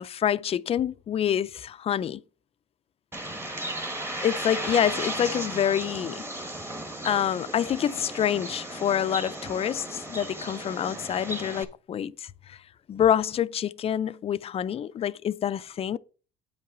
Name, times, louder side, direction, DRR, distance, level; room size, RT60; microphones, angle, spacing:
voice 1, 0.0-2.2 4.2-6.2 7.0-12.6 12.9-16.0, left 9 dB, 35° left, 0.4 m, -27 dB
Bird, 3.1-11.6, right 1 dB, 15° right, 1.3 m, -35 dB
8.8 x 5.5 x 5.0 m
cardioid pair, 110°, 17 cm